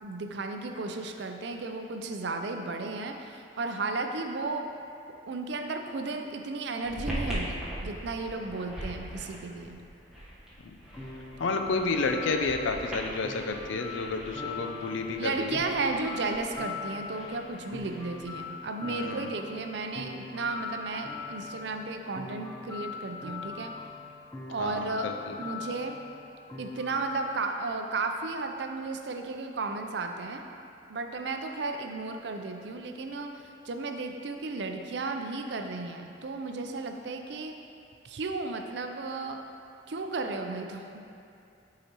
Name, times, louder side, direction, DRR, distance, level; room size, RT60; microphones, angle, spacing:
voice 1, 0.0-4.7 5.3-9.8 15.2-23.7 24.5-25.1 25.4-26.0 26.6-30.4 30.9-37.6 38.0-39.4 39.9-41.0, right 3 dB, 65° right, 5 dB, 0.5 m, -34 dB
sound 1, 6.8-18.4, equal, 5° right, 1.0 m, -41 dB
sound 2, 10.9-27.4, left 5 dB, 15° left, 0.4 m, -42 dB
voice 2, 11.4-15.6 18.8-19.3 24.6-25.3, left 3 dB, 85° left, 5 dB, 0.5 m, -31 dB
7.9 x 4.9 x 2.9 m, 2.6 s
head